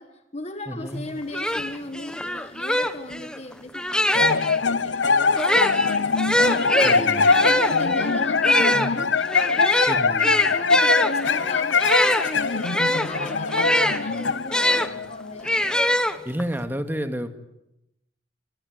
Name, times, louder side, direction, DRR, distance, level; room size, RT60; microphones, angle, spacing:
voice 1, 0.0-6.2 6.5-15.7, left 2 dB, 35° left, 8 dB, 1.7 m, -37 dB
voice 2, 0.7-1.1 6.8-7.3 8.7-8.9 9.9-10.3 16.3-17.4, equal, 10° right, 7 dB, 2.2 m, -30 dB
sound 1, 1.0-1.1 1.3-4.6 5.3-14.9 15.4-16.5, left 1 dB, 5° left, 1.3 m, -23 dB
sound 2, 4.1-15.7, left 4 dB, 80° left, 0.9 m, -23 dB
27.0 x 22.0 x 9.6 m, 0.87 s
head